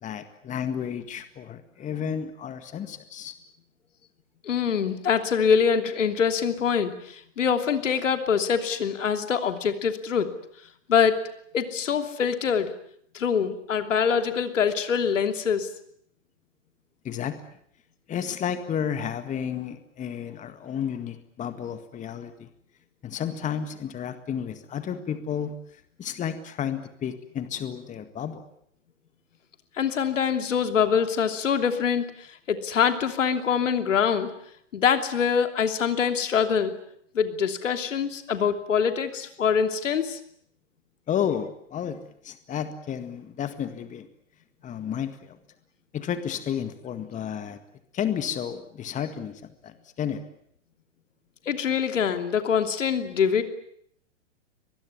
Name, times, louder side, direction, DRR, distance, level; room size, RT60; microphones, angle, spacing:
voice 1, 0.0-3.3 17.0-17.4 18.1-22.5 23.0-28.5 41.1-44.1 44.6-45.4 45.9-47.6 47.9-50.2, left 8 dB, 20° left, 10 dB, 1.9 m, -32 dB
voice 2, 4.4-10.3 10.9-11.2 11.5-12.7 13.1-15.7 29.8-34.3 34.7-36.8 37.1-40.2 51.5-53.4, left 7 dB, 75° left, 8 dB, 3.1 m, -24 dB
24.0 x 20.5 x 9.6 m, 0.68 s
hypercardioid pair, 120°, 38 cm